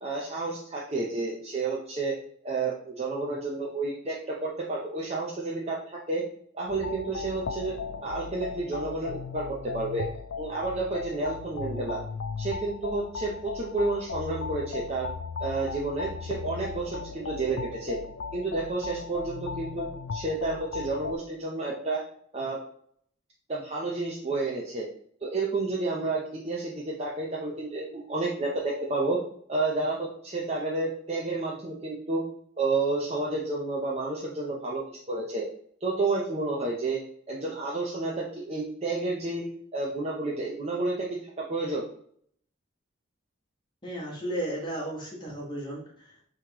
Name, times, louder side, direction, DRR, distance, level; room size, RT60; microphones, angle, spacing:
voice 1, 0.0-2.2 2.4-5.8 6.1-6.2 6.5-7.7 8.0-10.1 10.4-12.0 12.4-15.1 15.4-18.0 18.3-22.0 22.3-22.6 23.5-24.9 25.2-29.2 29.5-32.2 32.6-35.5 35.8-37.0 37.3-39.4 39.7-41.8, right 3 dB, 30° right, -4 dB, 0.6 m, -30 dB
sound 1, 6.7-21.2, left 5 dB, 60° left, 0.3 m, -37 dB
voice 2, 43.8-46.3, right 1 dB, 20° left, -3 dB, 1.1 m, -34 dB
5.5 x 3.1 x 2.9 m, 0.62 s
head